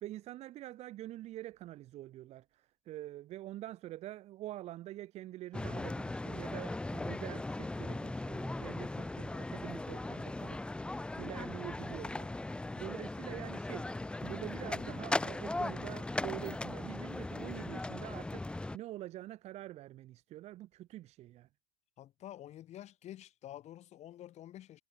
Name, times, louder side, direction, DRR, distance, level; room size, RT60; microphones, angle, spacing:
voice 1, 0.0-10.6 11.2-12.3 12.8-13.9 14.2-18.5 18.7-21.5, right 15 dB, 35° right, 0.8 m, -46 dB
sound 1, 5.5-18.8, left 2 dB, 5° left, 0.7 m, -38 dB
voice 2, 22.0-24.8, left 12 dB, 35° left, 3.9 m, -49 dB
hypercardioid pair, 100°, 19 cm